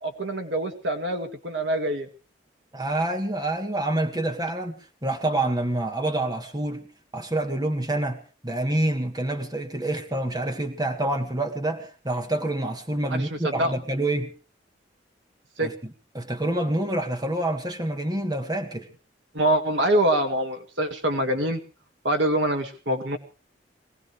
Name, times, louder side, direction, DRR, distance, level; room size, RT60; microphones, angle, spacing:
voice 1, 0.0-2.1 13.1-13.7 15.6-15.7 19.3-21.6 22.0-23.2, right 1 dB, 80° right, 5 dB, 2.1 m, -25 dB
voice 2, 2.7-4.8 5.0-6.8 7.1-14.3 15.6-18.9, right 1 dB, 20° right, 4 dB, 1.8 m, -27 dB
23.0 x 17.5 x 3.3 m, 0.35 s
head